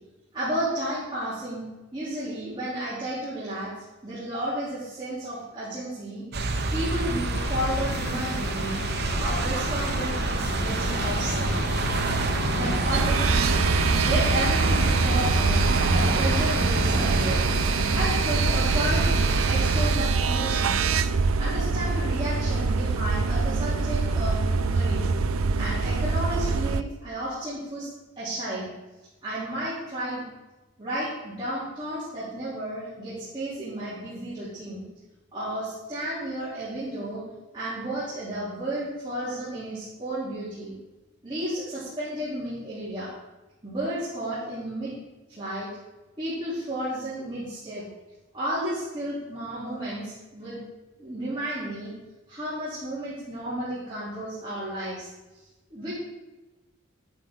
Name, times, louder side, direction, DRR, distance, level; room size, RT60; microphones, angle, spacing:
voice 1, 0.3-1.6 1.9-3.7 4.0-6.2 6.7-8.8 9.2-11.5 12.5-13.7 14.0-17.4 17.9-20.9 21.4-25.1 25.5-27.9 28.2-28.7 29.2-30.2 30.8-34.8 35.3-37.2 37.5-40.7 41.2-43.1 43.6-44.9 45.3-45.7 46.2-47.8 48.3-50.6 51.0-51.9 52.3-55.1 55.7-55.9, right 1 dB, 20° right, -12 dB, 3.3 m, -32 dB
sound 1, 6.3-20.0, right 3 dB, 50° right, 0.9 m, -27 dB
sound 2, 7.3-19.9, left 3 dB, 65° left, 0.5 m, -34 dB
sound 3, 12.9-26.8, right 4 dB, 85° right, 0.5 m, -25 dB
11.0 x 9.2 x 3.8 m, 1.1 s
head